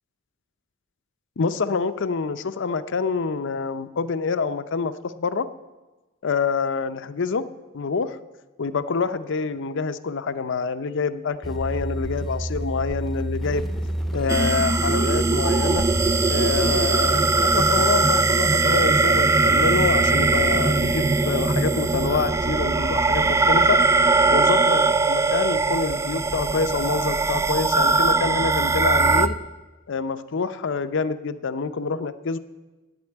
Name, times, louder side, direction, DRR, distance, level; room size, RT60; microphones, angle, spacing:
voice 1, 1.4-5.5 6.2-7.5 7.7-8.2 8.6-13.7 14.1-15.9 16.3-23.8 24.3-29.4 29.9-32.4, left 4 dB, 60° left, 12 dB, 0.6 m, -26 dB
sound 1, 11.4-29.4, right 1 dB, ahead, 0.8 m, -31 dB
sound 2, 14.3-29.3, right 3 dB, 15° right, 0.3 m, -20 dB
9.4 x 7.9 x 8.6 m, 1.2 s
head